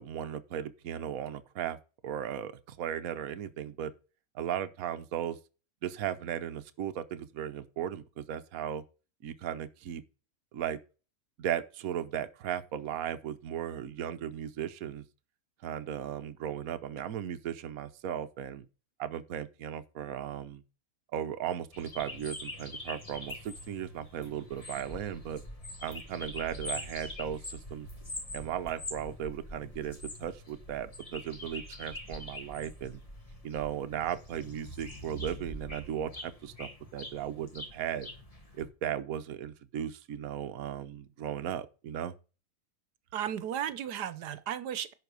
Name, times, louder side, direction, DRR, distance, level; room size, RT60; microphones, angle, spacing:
voice 1, 0.0-1.8 2.0-3.9 4.3-5.4 5.8-8.8 9.2-10.0 10.5-10.8 11.4-15.0 15.6-18.7 19.0-20.6 21.1-25.4 25.8-27.9 28.3-33.0 33.4-38.1 38.6-42.1, right 9 dB, 65° right, 1.2 m, -36 dB
sound 1, 21.7-38.7, left 1 dB, 20° left, 1.9 m, -44 dB
voice 2, 43.1-44.9, right 10 dB, 80° right, 1.4 m, -34 dB
11.0 x 4.5 x 6.8 m
omnidirectional pair, 1.8 m